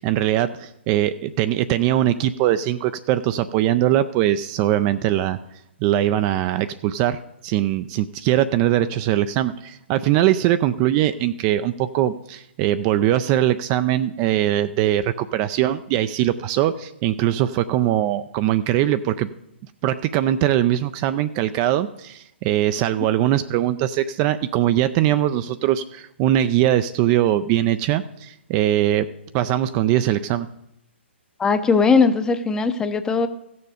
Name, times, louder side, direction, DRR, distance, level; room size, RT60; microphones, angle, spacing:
voice 1, 0.0-5.4 5.8-19.3 19.8-29.1 29.3-30.5, right 12 dB, 30° right, 11 dB, 0.4 m, -21 dB
voice 2, 31.4-33.3, left 5 dB, 10° left, 10 dB, 0.6 m, -19 dB
15.5 x 6.9 x 5.0 m, 0.81 s
figure-of-eight pair, 130°, 7 cm